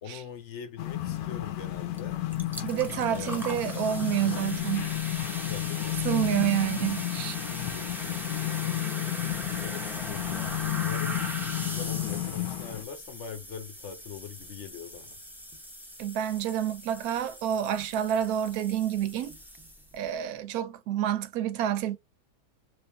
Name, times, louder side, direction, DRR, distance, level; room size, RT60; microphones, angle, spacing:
voice 1, 0.0-2.2 3.1-3.6 5.5-6.6 6.9-7.0 8.6-15.2, left 7 dB, 60° left, 0.8 m, -43 dB
sound 1, 0.8-12.8, left 14 dB, 85° left, 1.2 m, -32 dB
sound 2, 1.9-2.0 2.3-20.0, equal, ahead, 0.5 m, -40 dB
voice 2, 2.6-4.9 6.0-7.4 16.0-19.4 19.9-22.0, right 10 dB, 85° right, 1.1 m, -28 dB
3.3 x 2.5 x 3.3 m
omnidirectional pair, 1.6 m